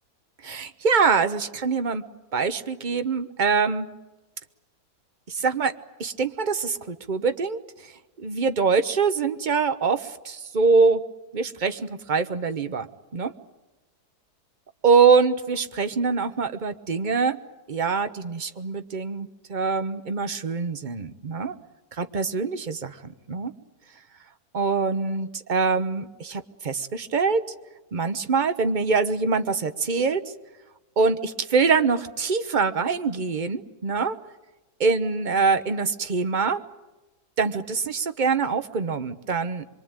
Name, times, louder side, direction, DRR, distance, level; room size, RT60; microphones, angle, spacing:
voice 1, 0.4-2.0 2.3-3.9 5.3-5.7 6.0-7.9 8.2-11.0 11.3-12.9 13.1-13.3 14.8-17.4 17.7-21.6 22.0-23.5 24.5-27.4 27.9-30.2 31.0-34.2 34.8-36.6 37.4-39.6, right 5 dB, 35° right, 9 dB, 0.9 m, -24 dB
25.5 x 23.0 x 8.9 m, 1.1 s
omnidirectional pair, 1.8 m